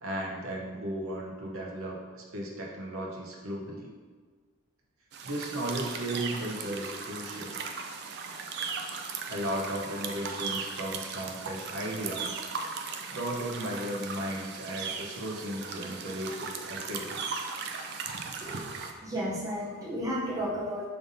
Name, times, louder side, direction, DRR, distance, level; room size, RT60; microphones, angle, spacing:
voice 1, 0.0-3.9 5.2-7.6 9.3-12.4 13.1-17.2, right 1 dB, 70° right, -2 dB, 0.8 m, -35 dB
sound 1, 5.1-18.9, right 5 dB, 50° right, 0.3 m, -37 dB
voice 2, 18.4-20.9, equal, 15° right, -5 dB, 0.7 m, -33 dB
5.2 x 3.4 x 2.6 m, 1.5 s
head